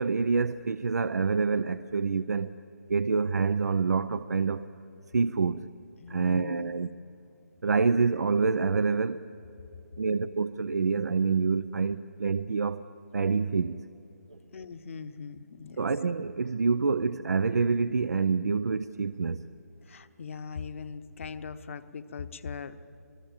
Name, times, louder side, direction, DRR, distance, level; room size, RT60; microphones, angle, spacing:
voice 1, 0.0-2.5 2.9-4.7 5.1-5.7 6.1-6.9 7.6-9.3 10.0-12.8 13.1-13.8 15.8-19.4, right 4 dB, 75° right, 0.6 m, -27 dB
voice 2, 6.0-6.7 14.5-15.8 19.9-22.8, left 5 dB, 50° left, 1.0 m, -40 dB
26.0 x 19.5 x 7.3 m
figure-of-eight pair, 150°, 9 cm